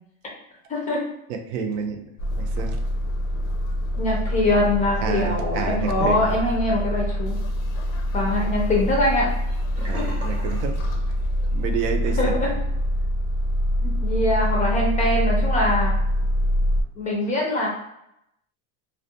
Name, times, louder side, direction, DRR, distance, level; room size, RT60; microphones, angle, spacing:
voice 1, 0.7-1.0 4.0-7.4 8.1-9.3 9.9-10.1 12.2-12.5 13.8-16.0 17.0-17.7, left 1 dB, 20° left, -2 dB, 0.4 m, -23 dB
voice 2, 1.3-2.1 2.4-2.8 5.0-6.2 9.8-10.8 11.5-12.6, right 6 dB, 75° right, 5 dB, 0.5 m, -29 dB
sound 1, 2.2-16.8, equal, 90° left, 0.6 m, -25 dB
Sink (filling or washing), 9.8-11.7 12.0-12.3 12.7-12.8, right 1 dB, 20° right, 0.7 m, -40 dB
2.4 x 2.1 x 2.7 m, 0.79 s
cardioid pair, 145°, 39 cm